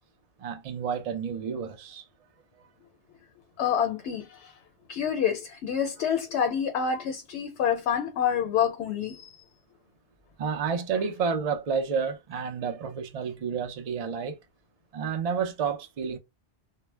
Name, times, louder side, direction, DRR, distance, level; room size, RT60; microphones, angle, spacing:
voice 1, 0.4-2.0 10.4-14.4 14.9-16.2, right 6 dB, 55° right, 0.4 m, -30 dB
voice 2, 3.6-4.5 4.9-9.3, left 8 dB, 80° left, 0.8 m, -27 dB
2.1 x 2.0 x 3.1 m
omnidirectional pair, 1.1 m